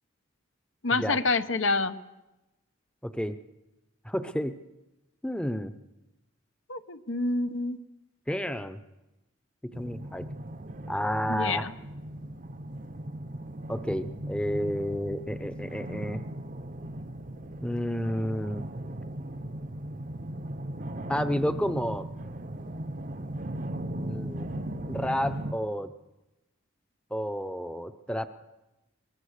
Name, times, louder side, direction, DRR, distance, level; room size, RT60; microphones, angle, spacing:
voice 1, 0.8-2.0 6.7-7.8 11.3-11.7, left 3 dB, 75° left, 10 dB, 1.0 m, -27 dB
voice 2, 3.0-3.4 4.0-4.5 5.2-5.7 8.3-8.8 9.8-10.3 10.9-11.7 13.7-16.2 17.6-18.6 21.1-22.1 24.0-24.5 24.9-25.9 27.1-28.3, equal, 5° left, 10 dB, 0.7 m, -30 dB
sound 1, 9.7-25.5, right 1 dB, 40° right, 0.8 m, -38 dB
22.5 x 21.0 x 6.6 m, 1.0 s
head